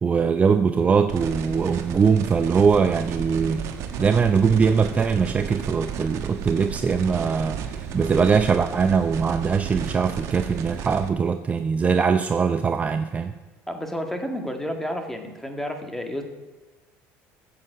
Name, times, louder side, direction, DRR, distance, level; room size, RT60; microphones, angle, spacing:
voice 1, 0.0-3.6 4.0-13.3, right 5 dB, 25° right, 8 dB, 0.6 m, -21 dB
sound 1, 1.1-11.1, right 7 dB, 60° right, 1.4 m, -33 dB
voice 2, 13.7-16.2, equal, 5° left, 5 dB, 1.9 m, -30 dB
13.0 x 7.8 x 7.8 m, 1.2 s
cardioid pair, 120°, 6 cm